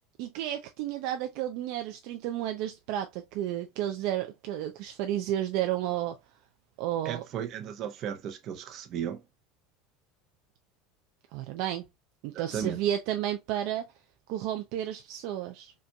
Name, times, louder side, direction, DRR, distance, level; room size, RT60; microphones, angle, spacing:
voice 1, 0.2-6.2 6.8-7.2 11.3-11.8 12.2-13.9 14.3-15.7, right 12 dB, 65° right, 0.5 m, -32 dB
voice 2, 7.0-9.2 12.3-12.8, right 8 dB, 50° right, 0.8 m, -35 dB
5.2 x 2.5 x 2.2 m
supercardioid pair, 110°, 0 cm